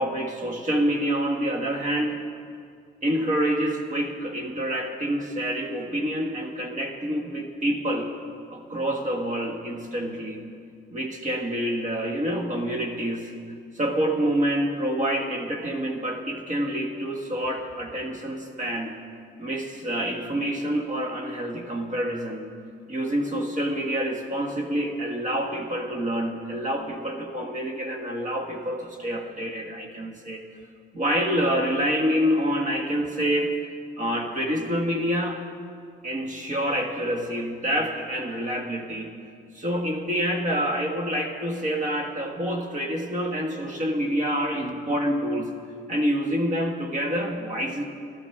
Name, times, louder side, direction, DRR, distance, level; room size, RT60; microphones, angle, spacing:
voice 1, 0.0-2.2 3.0-8.1 8.5-10.4 10.9-13.3 13.7-19.0 19.4-22.5 22.9-30.4 30.9-33.5 34.0-35.4 36.0-39.2 39.5-45.5 45.9-47.8, equal, 40° right, 2 dB, 1.6 m, -27 dB
12.5 x 12.0 x 5.9 m, 2.3 s
cardioid pair, 90°, 20 cm